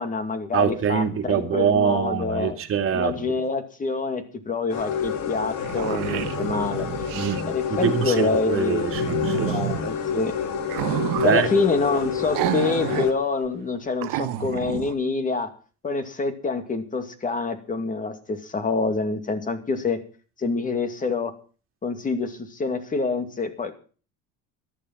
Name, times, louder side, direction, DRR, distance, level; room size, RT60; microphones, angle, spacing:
voice 1, 0.0-2.6 2.9-6.9 7.5-8.9 9.3-10.3 11.2-15.5 15.8-20.0 20.4-21.3 21.8-23.7, left 4 dB, 25° left, 9 dB, 2.4 m, -26 dB
voice 2, 0.5-3.3 7.1-9.9 11.2-11.5, right 7 dB, 40° right, 6 dB, 2.4 m, -24 dB
sound 1, 4.7-13.1, left 7 dB, 55° left, 2.6 m, -29 dB
sound 2, 5.0-5.1 5.4-7.4 8.9-9.8 10.6-11.4 12.3-13.1 13.4-13.5 14.0-14.9, right 13 dB, 75° right, 1.4 m, -29 dB
14.0 x 12.0 x 5.6 m, 0.39 s
cardioid pair, 130°, 33 cm